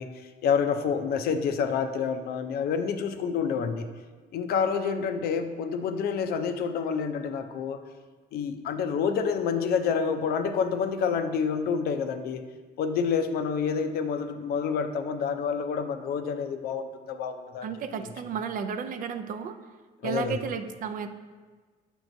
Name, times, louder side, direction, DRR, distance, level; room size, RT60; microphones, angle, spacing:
voice 1, 0.0-3.9 4.3-7.8 8.3-12.4 12.8-17.7 18.0-18.1 20.0-20.4, left 6 dB, 65° left, 8 dB, 0.5 m, -28 dB
voice 2, 17.6-19.6 20.0-21.1, right 7 dB, 55° right, 9 dB, 0.4 m, -33 dB
8.4 x 4.6 x 2.6 m, 1.4 s
cardioid pair, 110°, 17 cm